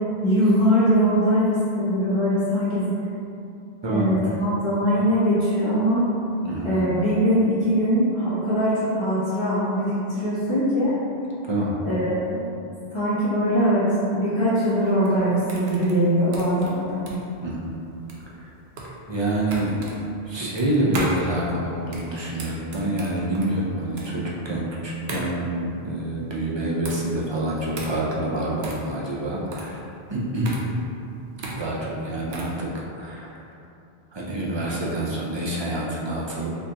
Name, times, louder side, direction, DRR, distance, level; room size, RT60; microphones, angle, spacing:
voice 1, 0.2-2.9 3.9-6.1 6.6-11.0 11.8-12.4 12.9-17.0, equal, 30° left, -13 dB, 1.0 m, -21 dB
voice 2, 6.4-6.8 11.5-11.8 17.4-17.8 18.4-18.5 19.1-19.9 20.3-29.8 30.1-30.6 31.6-33.6 34.1-36.5, right 1 dB, 40° right, -5 dB, 0.4 m, -27 dB
sound 1, 14.8-32.6, right 2 dB, 80° right, 0.9 m, -37 dB
4.4 x 2.5 x 2.8 m, 2.7 s
omnidirectional pair, 1.1 m